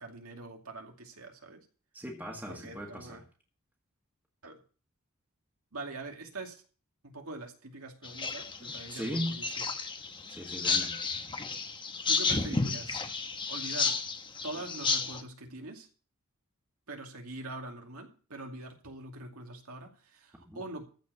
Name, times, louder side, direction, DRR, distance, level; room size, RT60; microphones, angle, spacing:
voice 1, 0.0-1.6 2.5-3.2 4.4-4.6 5.7-6.6 7.0-9.5 12.1-13.0 13.5-14.0 14.4-15.9 16.9-20.8, right 2 dB, 80° right, 2.4 m, -43 dB
voice 2, 1.9-3.2 8.6-9.4 10.3-11.0 20.4-20.6, equal, 10° right, 1.8 m, -38 dB
sound 1, 8.0-15.2, left 4 dB, 20° left, 1.0 m, -32 dB
14.5 x 4.8 x 8.1 m
head